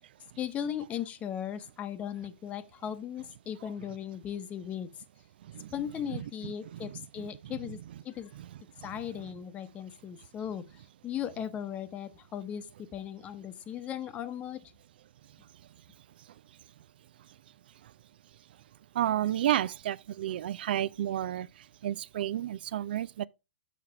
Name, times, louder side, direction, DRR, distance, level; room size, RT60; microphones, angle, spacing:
voice 1, 0.4-4.9 5.7-7.8 8.0-8.3 8.8-14.7, left 9 dB, 25° left, 0.8 m, -37 dB
voice 2, 5.4-5.7 6.1-6.2 6.4-6.5 6.8-6.9 7.2-7.5 8.4-8.5 8.8-8.9 16.2-16.3 17.2-17.4 17.8-17.9 18.9-23.3, right 12 dB, 60° right, 0.3 m, -32 dB
6.7 x 5.9 x 4.7 m
hypercardioid pair, 130°, 6 cm